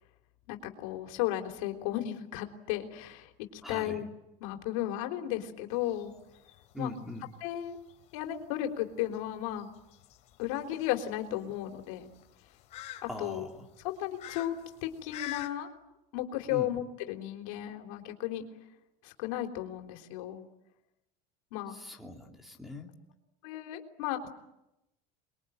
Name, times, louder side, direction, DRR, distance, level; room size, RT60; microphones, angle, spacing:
voice 1, 0.5-4.0 4.4-6.1 6.8-6.9 7.4-7.8 8.1-9.7 10.4-12.1 13.2-13.5 13.8-14.5 14.8-15.7 16.1-18.4 19.0-20.4 21.5-21.8 23.4-24.3, left 13 dB, 85° left, 4 dB, 3.7 m, -34 dB
voice 2, 3.6-4.0 6.7-7.3 13.1-13.7 16.5-16.7 21.7-23.0, left 2 dB, ahead, 3 dB, 2.8 m, -41 dB
sound 1, 5.7-15.5, left 14 dB, 45° left, 3.4 m, -48 dB
28.5 x 22.0 x 9.2 m, 0.91 s
cardioid pair, 165°, 17 cm